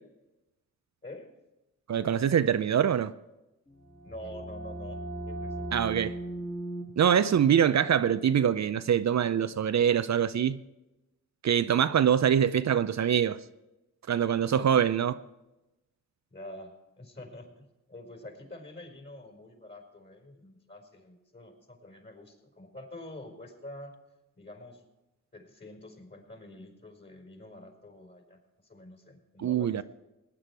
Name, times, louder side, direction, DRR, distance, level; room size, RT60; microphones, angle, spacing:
voice 1, 1.9-3.1 5.7-6.1 7.0-10.6 11.4-13.4 14.1-15.2 29.4-29.8, right 8 dB, 55° right, 0.5 m, -24 dB
sound 1, 3.7-9.3, right 1 dB, 15° left, 2.2 m, -40 dB
voice 2, 4.0-5.0 5.2-5.7 6.9-7.0 14.6-14.8 16.3-23.9 24.3-24.8 25.3-29.8, left 1 dB, 35° left, 4.9 m, -47 dB
18.5 x 9.7 x 4.7 m
cardioid pair, 50°, 32 cm